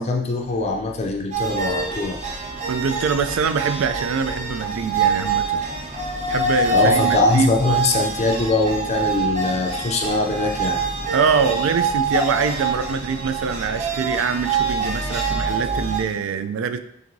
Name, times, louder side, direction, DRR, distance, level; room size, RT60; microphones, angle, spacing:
voice 1, 0.0-2.2 6.7-10.8, left 3 dB, 35° left, 2 dB, 0.4 m, -22 dB
sound 1, 1.3-16.0, right 3 dB, 35° right, 0.8 m, -25 dB
voice 2, 2.7-5.6 6.3-7.6 11.1-16.8, right 6 dB, 80° right, 11 dB, 0.3 m, -24 dB
5.8 x 2.6 x 2.6 m, 0.74 s
head